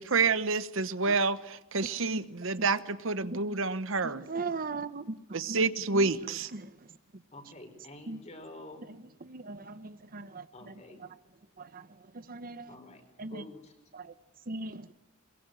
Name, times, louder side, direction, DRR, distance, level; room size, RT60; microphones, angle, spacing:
voice 1, 0.0-4.2 5.3-6.5, right 4 dB, 70° right, 13 dB, 1.0 m, -28 dB
voice 2, 4.0-6.1 6.5-6.8 7.4-7.5 8.1-8.2 8.8-11.1 11.6-12.8 13.2-13.5 13.9-14.1 14.5-14.9, right 3 dB, 45° right, 12 dB, 0.9 m, -40 dB
voice 3, 7.3-8.9 10.5-11.0 12.7-13.7, left 1 dB, 35° left, 6 dB, 5.2 m, -48 dB
23.0 x 22.5 x 9.2 m, 0.86 s
head